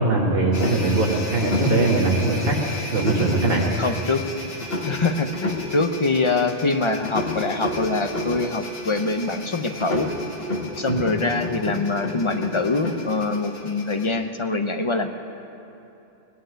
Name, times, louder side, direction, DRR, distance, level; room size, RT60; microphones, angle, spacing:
voice 1, 0.0-2.6 2.9-3.6 10.9-11.0, right 2 dB, 50° right, -3 dB, 1.6 m, -21 dB
sound 1, 0.5-14.1, left 2 dB, 55° left, 1.7 m, -31 dB
voice 2, 3.8-4.3 4.8-10.1 10.8-15.1, left 3 dB, 35° left, 6 dB, 0.6 m, -24 dB
18.0 x 6.6 x 9.2 m, 2.8 s
omnidirectional pair, 1.2 m